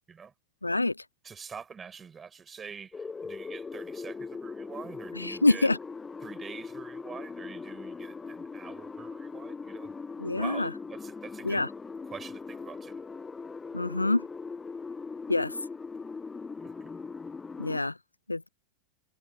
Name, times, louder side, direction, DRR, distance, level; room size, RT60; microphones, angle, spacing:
voice 1, 0.6-1.0 5.2-5.8 10.2-10.7 11.4-11.7 13.7-14.3 15.3-15.6 17.6-18.0 18.3-18.5, left 2 dB, 85° left, 0.6 m, -26 dB
voice 2, 1.2-5.7 6.2-9.9 10.3-11.6 12.0-13.0 16.6-16.9, right 6 dB, 20° right, 6.1 m, -45 dB
sound 1, 2.9-17.8, left 4 dB, 15° left, 0.5 m, -40 dB
figure-of-eight pair, 90°, 0 cm